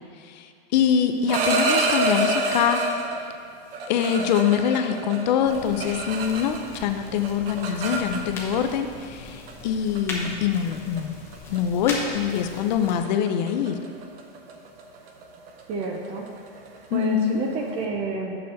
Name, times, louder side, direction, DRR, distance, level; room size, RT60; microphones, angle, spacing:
voice 1, 0.2-2.8 3.9-11.1 11.5-13.8 16.9-17.4, left 8 dB, 50° left, 7 dB, 0.6 m, -24 dB
sound 1, 1.1-3.2 3.7-6.8 7.0-8.6 9.5-9.6 10.0-10.3 10.7-11.0 11.3-11.6 11.9-12.1 12.4-17.8, right 3 dB, 70° right, 1.1 m, -28 dB
sound 2, 5.4-13.0, left 2 dB, 10° left, 0.9 m, -38 dB
voice 2, 15.7-16.3 16.9-18.4, right 3 dB, 20° right, 2 dB, 0.4 m, -29 dB
6.9 x 5.0 x 6.7 m, 2.3 s
supercardioid pair, 165°, 30 cm